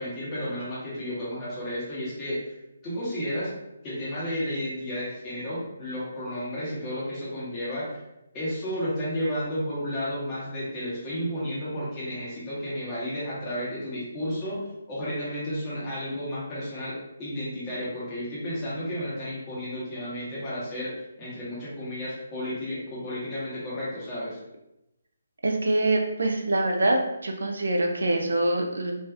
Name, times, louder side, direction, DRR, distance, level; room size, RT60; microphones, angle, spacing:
voice 1, 0.0-2.4 2.8-3.5 3.8-8.0 8.3-20.9 21.2-24.4, equal, 25° left, -9 dB, 1.1 m, -32 dB
voice 2, 25.4-28.9, right 2 dB, 65° right, 2 dB, 0.4 m, -25 dB
2.4 x 2.3 x 2.6 m, 0.90 s
figure-of-eight pair, 140°, 0 cm